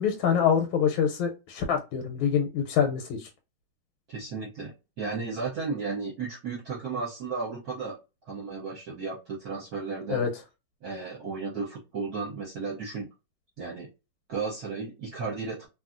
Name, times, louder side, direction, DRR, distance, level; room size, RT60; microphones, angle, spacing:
voice 1, 0.0-3.3 10.1-10.3, left 7 dB, 80° left, 4 dB, 1.4 m, -25 dB
voice 2, 4.1-8.0 8.2-10.3 10.8-13.1 13.6-13.9 14.3-15.7, right 4 dB, 55° right, -4 dB, 1.2 m, -34 dB
2.9 x 2.7 x 2.4 m, 0.27 s
omnidirectional pair, 2.2 m